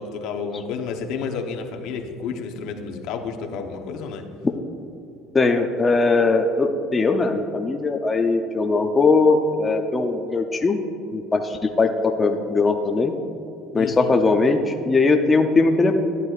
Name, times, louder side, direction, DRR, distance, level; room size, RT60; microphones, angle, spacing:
voice 1, 0.0-4.3 13.8-14.1, left 5 dB, 65° left, 4 dB, 0.9 m, -31 dB
voice 2, 5.3-10.8 11.1-13.1 13.7-15.9, left 3 dB, 20° left, 3 dB, 0.5 m, -20 dB
13.5 x 9.5 x 2.4 m, 2.8 s
cardioid pair, 135°, 0 cm